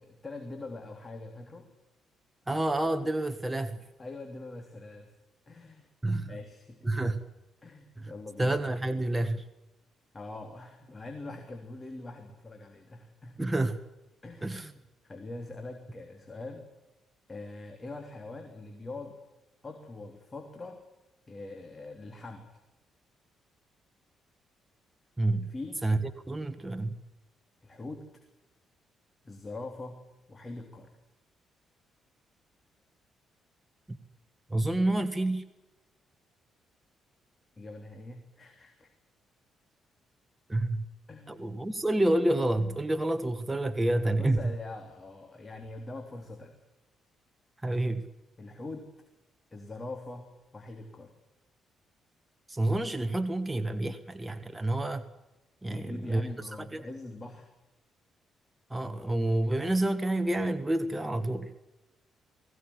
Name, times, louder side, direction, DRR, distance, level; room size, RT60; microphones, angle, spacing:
voice 1, 0.0-1.7 4.0-5.1 5.5-5.9 6.3-6.8 7.6-8.6 10.1-13.4 14.2-16.7 17.3-19.1 19.6-20.8 21.3-22.6 25.3-25.8 27.6-28.0 29.2-30.0 30.3-30.9 37.6-38.9 41.1-41.5 44.0-46.6 48.4-48.9 49.5-51.1 55.7-57.5, left 2 dB, 25° left, 4 dB, 3.5 m, -43 dB
voice 2, 2.5-3.8 6.0-6.3 6.8-7.2 8.0-8.1 8.4-9.5 13.4-13.8 14.4-14.7 25.2-25.5 25.8-26.9 33.9-34.0 34.5-35.4 40.5-40.9 41.3-44.5 47.6-48.0 52.5-55.0 55.6-56.3 56.6-56.9 58.7-61.5, right 1 dB, 10° right, 8 dB, 1.6 m, -28 dB
21.0 x 17.0 x 10.0 m, 0.99 s
cardioid pair, 90°, 0 cm